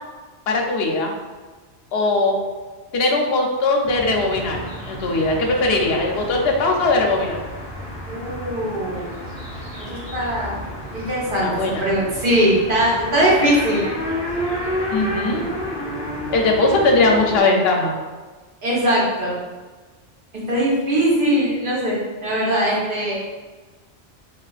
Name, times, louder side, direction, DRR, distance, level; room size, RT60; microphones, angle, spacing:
voice 1, 0.5-1.1 1.9-2.4 2.9-7.4 11.4-11.8 14.9-15.5 16.3-17.9, left 2 dB, 70° left, 1 dB, 0.8 m, -20 dB
sound 1, 3.8-17.4, left 1 dB, 25° right, 1.2 m, -30 dB
voice 2, 8.1-9.1 9.8-10.6 10.9-13.9 18.6-19.4 20.3-23.2, right 1 dB, 50° right, -6 dB, 1.0 m, -21 dB
3.8 x 2.4 x 2.3 m, 1.3 s
omnidirectional pair, 1.2 m